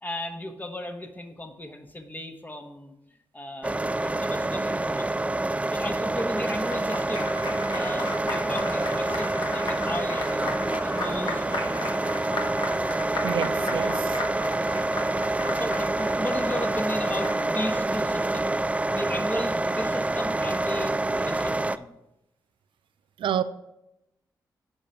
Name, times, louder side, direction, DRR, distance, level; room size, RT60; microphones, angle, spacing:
voice 1, 0.0-2.9 3.3-5.3 5.7-7.3 7.7-10.5 10.8-11.7 13.7-14.1 14.6-18.6 18.9-21.9, left 1 dB, 20° left, 1.2 m, -36 dB
sound 1, 3.6-21.8, right 2 dB, 15° right, 0.4 m, -27 dB
Applause, 6.1-17.8, left 2 dB, 65° left, 1.4 m, -36 dB
voice 2, 13.2-14.2 23.2-23.4, right 9 dB, 85° right, 0.4 m, -28 dB
7.1 x 5.2 x 5.6 m
supercardioid pair, 45°, 8 cm